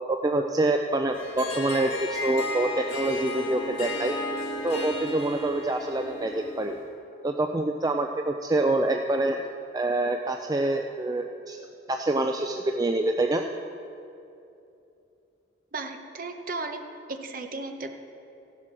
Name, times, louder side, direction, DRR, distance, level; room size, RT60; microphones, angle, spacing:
voice 1, 0.1-4.2 4.6-6.8 7.2-9.4 9.7-11.6 11.9-13.4, right 2 dB, 20° right, 4 dB, 0.4 m, -26 dB
Harp, 1.1-6.9, left 2 dB, 75° left, 2.0 m, -34 dB
voice 2, 15.7-16.8 17.1-17.9, right 3 dB, 45° right, 5 dB, 0.9 m, -35 dB
14.5 x 7.5 x 6.1 m, 2.8 s
head